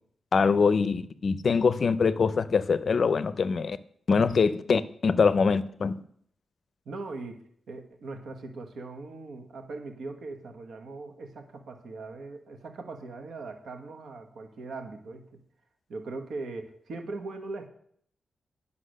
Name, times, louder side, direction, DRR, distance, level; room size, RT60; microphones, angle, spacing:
voice 1, 0.3-3.8 4.1-6.0, left 5 dB, 50° left, 15 dB, 0.5 m, -24 dB
voice 2, 6.8-15.4 15.9-17.7, right 3 dB, 75° right, 6 dB, 1.3 m, -40 dB
10.0 x 5.7 x 6.5 m, 0.64 s
wide cardioid pair, 140°, 0 cm